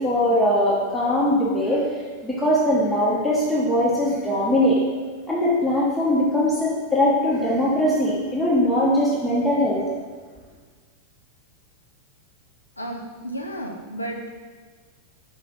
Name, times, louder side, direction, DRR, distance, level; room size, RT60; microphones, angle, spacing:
voice 1, 0.0-1.8 2.2-4.8 5.3-9.8, left 1 dB, 5° left, -8 dB, 0.7 m, -21 dB
voice 2, 12.8-14.4, right 1 dB, 85° left, 2 dB, 0.4 m, -33 dB
4.6 x 2.4 x 3.7 m, 1.5 s
figure-of-eight pair, 90°, 0 cm